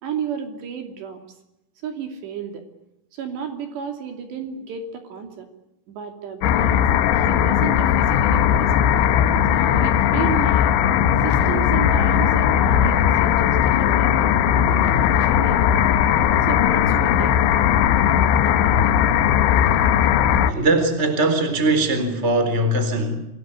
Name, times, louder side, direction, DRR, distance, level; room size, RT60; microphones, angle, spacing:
voice 1, 0.0-1.2 1.8-2.6 3.1-5.5 5.9-6.9 7.1-8.9 9.5-10.8 11.2-16.0 16.4-18.8, right 7 dB, 65° right, 5 dB, 4.7 m, -33 dB
sound 1, 6.4-20.5, left 9 dB, 75° left, 3.5 m, -18 dB
voice 2, 20.5-23.2, right 2 dB, 15° right, 9 dB, 3.6 m, -20 dB
27.5 x 20.0 x 9.9 m, 0.87 s
omnidirectional pair, 5.6 m